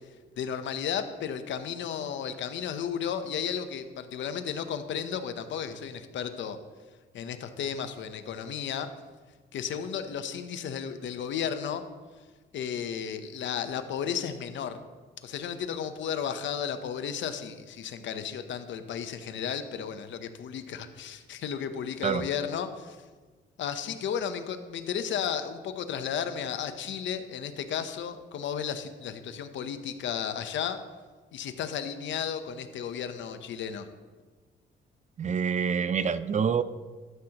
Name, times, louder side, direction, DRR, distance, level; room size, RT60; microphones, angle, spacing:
voice 1, 0.4-6.6 7.1-8.9 9.5-11.8 12.5-14.8 15.2-23.0 23.6-30.8 31.3-33.9, left 8 dB, 70° left, 9 dB, 0.8 m, -33 dB
voice 2, 35.2-36.6, right 6 dB, 35° right, 14 dB, 0.4 m, -26 dB
12.5 x 7.8 x 2.9 m, 1.4 s
cardioid pair, 90°, 20 cm